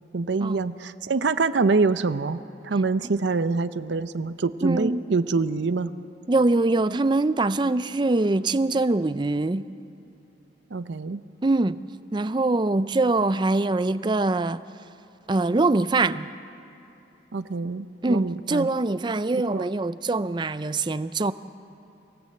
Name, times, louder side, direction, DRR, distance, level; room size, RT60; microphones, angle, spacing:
voice 1, 0.1-5.9 10.7-11.2 17.3-18.7 19.3-19.6, right 4 dB, 75° right, 0.6 m, -25 dB
voice 2, 4.6-5.0 6.3-9.7 11.4-11.8 12.1-14.6 15.3-16.3 18.0-21.3, right 2 dB, 25° right, 0.4 m, -23 dB
25.5 x 17.5 x 7.7 m
head